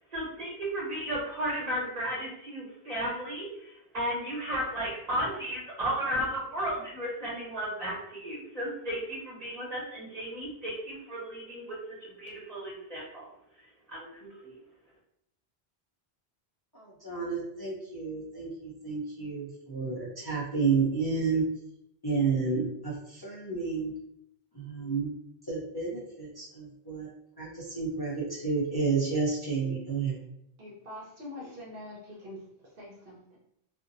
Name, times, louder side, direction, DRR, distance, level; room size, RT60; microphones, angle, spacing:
voice 1, 0.1-13.3 13.9-14.6, equal, 40° right, -5 dB, 1.3 m, -34 dB
voice 2, 16.7-21.4 22.0-23.9 24.5-25.1 25.5-27.1 27.4-30.2, right 4 dB, 25° left, -7 dB, 0.6 m, -31 dB
voice 3, 30.6-32.5 32.7-33.4, left 1 dB, 60° right, -4 dB, 0.9 m, -44 dB
2.6 x 2.1 x 3.9 m, 0.76 s
omnidirectional pair, 1.1 m